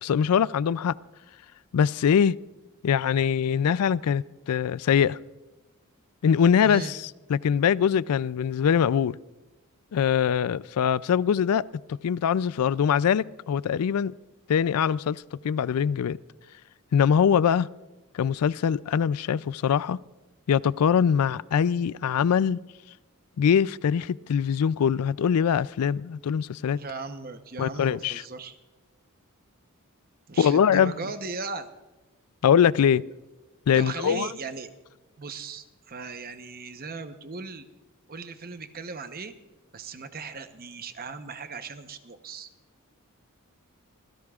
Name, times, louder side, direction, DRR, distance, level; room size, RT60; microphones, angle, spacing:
voice 1, 0.0-0.9 1.7-2.3 2.8-5.2 6.2-7.0 7.3-9.2 9.9-11.6 11.9-14.1 14.5-16.2 16.9-17.7 18.1-20.0 20.5-22.6 23.4-26.8 27.6-28.2 30.4-30.9 32.4-33.0 33.7-34.3, left 7 dB, 85° left, 0.4 m, -23 dB
voice 2, 6.6-6.9 26.7-28.6 30.3-31.7 33.7-34.7 35.2-37.6 38.1-39.3 39.7-42.5, right 4 dB, 40° right, 0.9 m, -37 dB
25.5 x 16.0 x 2.4 m
head